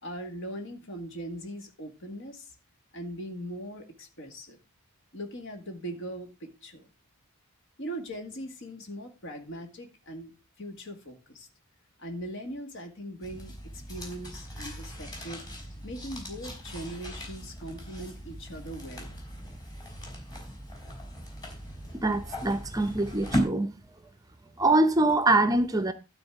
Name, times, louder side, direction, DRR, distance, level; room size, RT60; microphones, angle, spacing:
voice 1, 0.0-2.5 2.9-4.6 5.1-6.9 7.8-11.5 12.0-15.4 15.8-19.1, right 1 dB, 60° left, 2.1 m, -40 dB
sound 1, 13.2-23.4, equal, 20° left, 3.4 m, -37 dB
voice 2, 22.0-23.7 24.6-25.9, right 2 dB, 15° right, 0.6 m, -24 dB
12.0 x 4.2 x 7.4 m
head